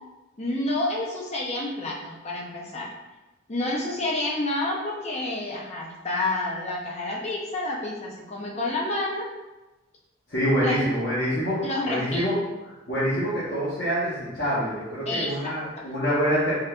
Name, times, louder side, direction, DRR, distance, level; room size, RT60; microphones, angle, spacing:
voice 1, 0.4-2.9 3.5-9.2 10.6-10.9 11.6-12.2 15.1-15.9, left 2 dB, 30° left, -3 dB, 0.5 m, -29 dB
voice 2, 10.3-12.4 12.9-16.5, equal, 55° left, -12 dB, 1.0 m, -26 dB
3.5 x 2.6 x 2.3 m, 1.1 s
head